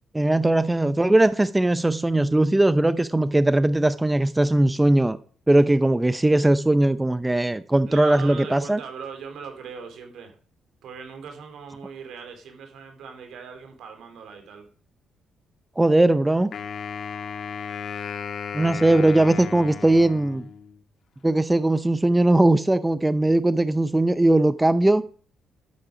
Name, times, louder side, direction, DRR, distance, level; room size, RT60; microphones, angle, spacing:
voice 1, 0.1-5.2 5.5-8.8 15.8-16.5 18.5-20.5 21.2-25.0, right 1 dB, 10° right, 0.6 m, -19 dB
voice 2, 7.9-10.4 10.8-14.6, right 6 dB, 75° right, 3.2 m, -39 dB
Wind instrument woodwind instrument, 16.5-20.8, left 6 dB, 55° left, 1.5 m, -35 dB
12.0 x 8.7 x 5.1 m
cardioid pair, 90°, 0 cm